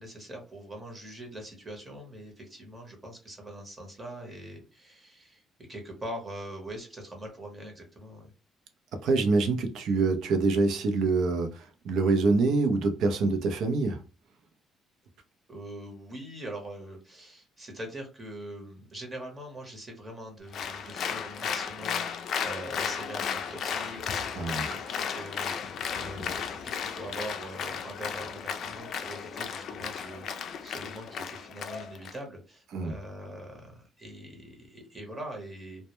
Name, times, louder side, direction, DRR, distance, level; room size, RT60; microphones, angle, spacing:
voice 1, 0.0-5.4 5.7-8.3 15.5-35.9, right 1 dB, 25° right, 0.9 m, -43 dB
voice 2, 9.0-14.0 24.3-24.8 32.7-32.9, right 3 dB, 70° right, 0.5 m, -25 dB
Applause, 20.5-32.2, left 7 dB, 60° left, 0.3 m, -34 dB
2.1 x 2.1 x 2.9 m
cardioid pair, 105°, 0 cm